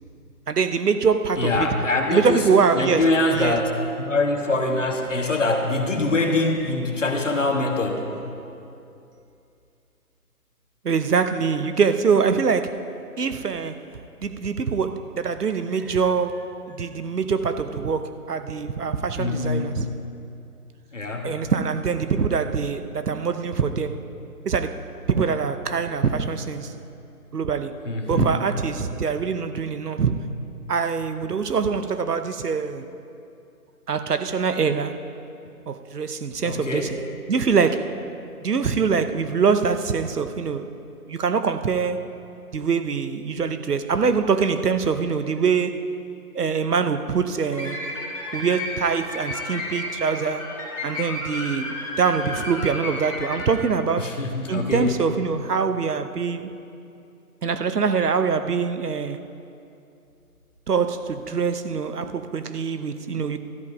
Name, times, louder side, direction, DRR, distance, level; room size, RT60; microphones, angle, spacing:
voice 1, 0.5-1.8 2.1-3.6 10.8-12.9 13.2-13.8 14.2-19.9 21.2-24.0 24.4-26.7 27.3-27.8 28.1-30.3 30.7-32.8 33.9-35.0 35.7-37.0 37.3-38.0 38.4-40.7 41.1-42.1 42.5-45.8 46.3-47.8 48.3-50.4 50.8-54.1 54.5-56.5 57.4-59.2 60.7-63.4, right 5 dB, 80° right, 0.9 m, -24 dB
voice 2, 1.4-2.4 2.7-3.6 4.1-8.1 19.2-19.7 20.9-21.3 27.8-28.4 36.4-36.9 54.0-54.9, left 2 dB, 50° left, 1.5 m, -24 dB
sound 1, 47.5-53.5, left 1 dB, 20° left, 2.2 m, -32 dB
13.0 x 10.5 x 5.2 m
figure-of-eight pair, 175°, 46 cm